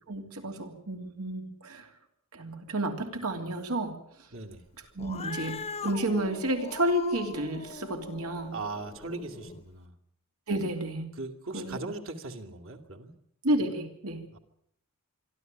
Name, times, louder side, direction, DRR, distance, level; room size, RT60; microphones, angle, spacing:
voice 1, 0.1-1.9 2.3-4.0 4.9-8.5 10.5-11.1 11.5-11.8 13.4-14.2, right 1 dB, 85° right, 4 dB, 3.1 m, -31 dB
voice 2, 4.3-4.6 8.5-9.9 11.1-13.1 14.3-14.4, right 3 dB, 65° right, 6 dB, 2.3 m, -39 dB
Cat, 5.0-9.6, left 4 dB, 30° left, 0.9 m, -41 dB
26.0 x 12.5 x 9.1 m, 0.74 s
head